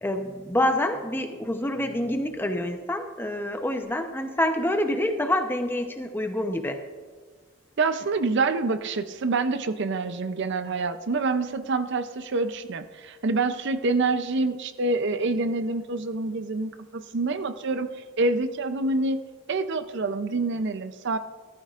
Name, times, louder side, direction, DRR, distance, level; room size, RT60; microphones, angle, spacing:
voice 1, 0.0-6.8, left 1 dB, 10° left, 5 dB, 0.8 m, -27 dB
voice 2, 7.8-17.9 18.2-19.2 19.5-21.2, right 3 dB, 55° right, 10 dB, 0.6 m, -26 dB
15.0 x 13.5 x 2.5 m, 1.5 s
head